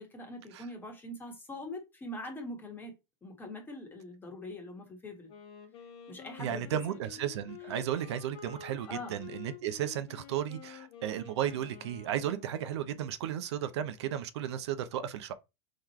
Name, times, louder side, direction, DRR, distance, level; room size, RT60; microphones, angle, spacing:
voice 1, 0.0-2.9 3.2-5.3 6.1-7.0 8.9-9.2, left 1 dB, 15° left, 1.5 m, -43 dB
Wind instrument woodwind instrument, 5.3-12.9, left 8 dB, 40° left, 1.3 m, -50 dB
voice 2, 6.4-15.3, right 10 dB, 75° right, 0.6 m, -34 dB
3.9 x 3.2 x 4.2 m
supercardioid pair, 140°, 14 cm